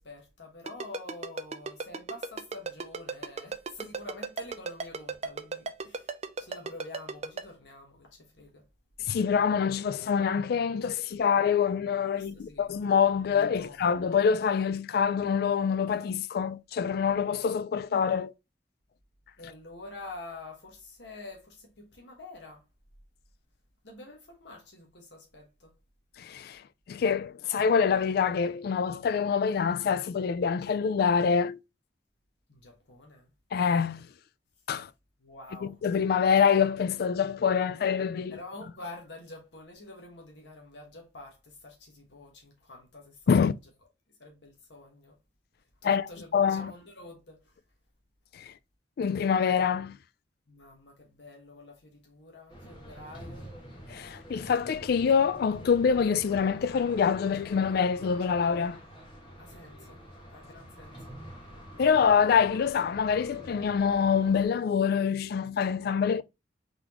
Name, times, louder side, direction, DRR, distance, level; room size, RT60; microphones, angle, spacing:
voice 1, 0.0-8.7 12.2-12.7 13.2-13.8 19.4-22.6 23.8-25.7 32.5-33.3 35.2-35.8 38.3-43.3 44.2-45.2 45.8-47.5 50.5-53.5 59.4-60.0 60.3-61.2, left 2 dB, 75° left, 1.3 m, -47 dB
Ringtone, 0.7-7.4, right 4 dB, 35° right, 0.4 m, -34 dB
voice 2, 9.1-18.3 26.2-26.6 26.9-31.6 33.5-34.1 34.7-34.9 35.6-38.4 43.3-43.5 45.8-46.7 48.3-48.5 49.0-50.0 53.9-58.8 61.8-66.2, left 6 dB, 60° left, 0.3 m, -25 dB
sound 1, 52.5-64.5, equal, 25° left, 1.5 m, -47 dB
4.0 x 3.6 x 2.9 m
head